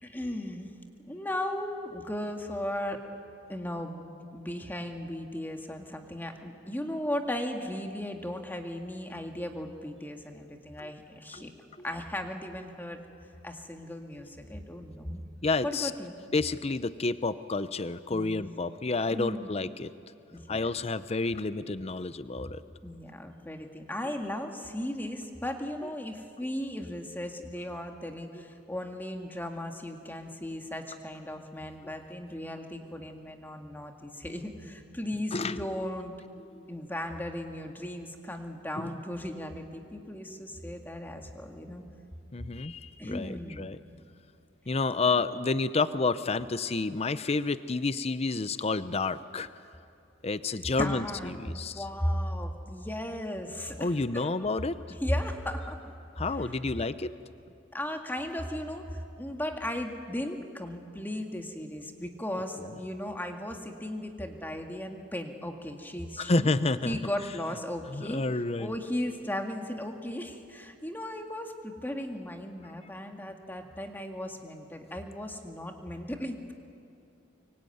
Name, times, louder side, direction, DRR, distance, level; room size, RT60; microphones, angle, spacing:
voice 1, 0.0-0.7 1.0-3.0 3.5-4.0 4.3-11.5 11.8-13.0 13.4-15.2 15.6-16.1 18.1-18.5 19.1-19.5 20.3-20.7 22.8-36.1 36.7-41.8 42.9-43.6 50.8-54.3 55.0-55.9 57.7-66.5 66.8-68.2 68.6-76.5, left 1 dB, 10° left, 4 dB, 2.0 m, -36 dB
voice 2, 15.4-15.9 16.3-19.9 20.5-22.6 35.3-35.6 36.5-36.8 38.8-39.0 42.3-43.8 44.7-49.5 50.2-51.8 53.8-54.8 56.2-57.1 62.6-62.7 66.2-67.0 67.9-68.7, left 3 dB, 35° left, 14 dB, 0.7 m, -30 dB
24.5 x 23.5 x 9.3 m, 2.6 s
head